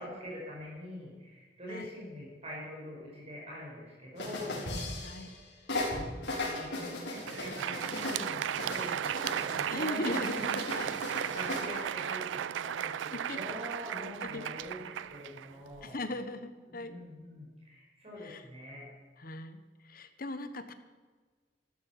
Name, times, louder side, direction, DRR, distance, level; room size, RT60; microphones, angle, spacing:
voice 1, 0.0-4.6 6.3-15.9 16.8-18.8, left 1 dB, 35° right, -4 dB, 5.2 m, -44 dB
sound 1, 4.2-5.4 5.7-9.7 10.1-11.7, left 2 dB, 70° left, 4.8 m, -37 dB
Crowd, 7.0-16.0, right 10 dB, 90° right, 0.3 m, -35 dB
voice 2, 7.9-8.2 9.7-10.9 13.1-13.4 14.2-14.4 15.8-16.9 18.2-18.4 19.2-20.7, left 1 dB, 50° left, 10 dB, 1.2 m, -39 dB
15.0 x 13.0 x 5.9 m, 1.4 s
head